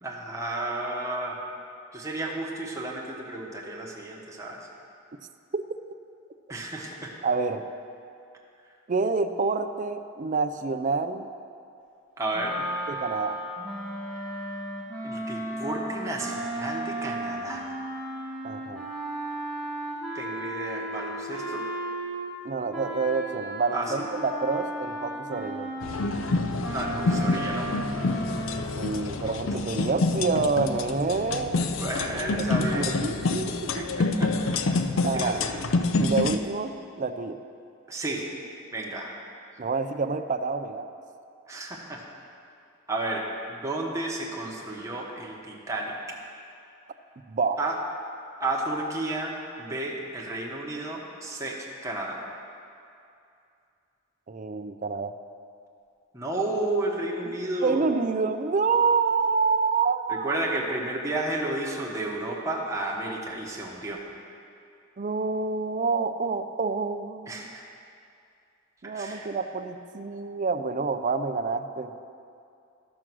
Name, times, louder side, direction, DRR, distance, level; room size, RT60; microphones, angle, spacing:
voice 1, 0.0-1.4 1.9-4.6 6.5-7.1 12.2-12.6 15.0-17.7 20.1-21.6 23.7-23.9 26.7-27.7 31.8-32.9 33.8-34.3 35.1-35.6 37.9-38.3 38.7-39.1 41.5-42.0 42.9-45.9 47.6-47.8 48.4-52.2 56.1-57.8 60.1-64.0 67.3-67.6 68.8-69.3, right 2 dB, 15° right, -2 dB, 1.3 m, -32 dB
voice 2, 7.2-7.6 8.9-11.3 12.9-13.4 18.4-18.8 22.4-25.8 28.8-31.7 32.1-33.9 35.0-35.4 36.0-37.4 39.6-40.9 47.3-47.6 54.3-55.1 57.3-57.4 57.6-60.3 65.0-67.5 68.8-72.0, right 4 dB, 40° right, 9 dB, 0.5 m, -28 dB
sound 1, 12.3-22.4 22.7-28.6, right 1 dB, 5° left, 2.1 m, -35 dB
sound 2, 25.8-36.4, left 3 dB, 70° left, 0.5 m, -27 dB
12.5 x 6.3 x 6.1 m, 2.5 s
head